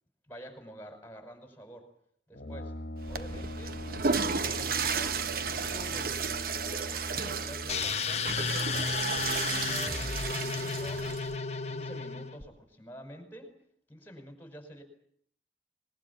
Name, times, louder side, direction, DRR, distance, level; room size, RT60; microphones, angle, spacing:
voice 1, 0.3-1.9 2.3-2.7 3.1-3.8 4.1-11.2 11.7-13.5 13.9-14.8, equal, 10° left, 6 dB, 5.8 m, -48 dB
Brass instrument, 2.3-8.1, left 1 dB, 60° left, 1.8 m, -41 dB
Water / Toilet flush, 3.0-11.4, right 5 dB, 55° right, 1.0 m, -33 dB
sound 1, 7.7-12.4, left 5 dB, 35° left, 1.2 m, -33 dB
23.5 x 22.5 x 8.7 m, 0.64 s
head